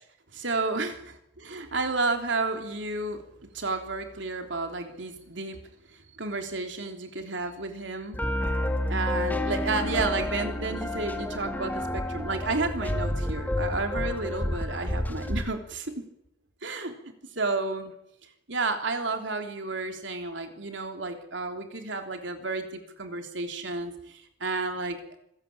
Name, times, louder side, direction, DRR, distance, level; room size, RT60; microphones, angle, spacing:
voice 1, 0.3-0.9 1.4-5.6 5.9-8.2 8.9-15.9 16.6-16.9 17.3-17.9 18.5-25.2, right 3 dB, 70° right, 5 dB, 3.4 m, -31 dB
sound 1, 8.1-15.4, left 1 dB, 10° left, 1.9 m, -30 dB
26.5 x 15.5 x 8.7 m, 0.81 s
head